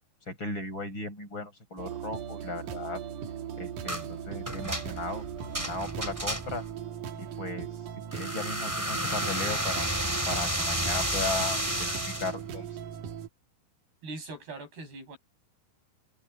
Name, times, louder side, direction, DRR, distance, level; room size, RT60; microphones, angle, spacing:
voice 1, 0.3-3.0 3.6-5.2 5.6-6.6 7.2-7.7 8.1-9.9 10.3-12.7, left 3 dB, 30° left, 8.0 m, -36 dB
sound 1, 1.8-13.3, right 8 dB, 60° right, 2.6 m, -39 dB
sound 2, 3.9-4.1 4.5-6.7 8.1-12.4, equal, 5° right, 3.4 m, -31 dB
voice 2, 14.0-15.2, right 2 dB, 85° right, 10.0 m, -41 dB
omnidirectional pair, 4.5 m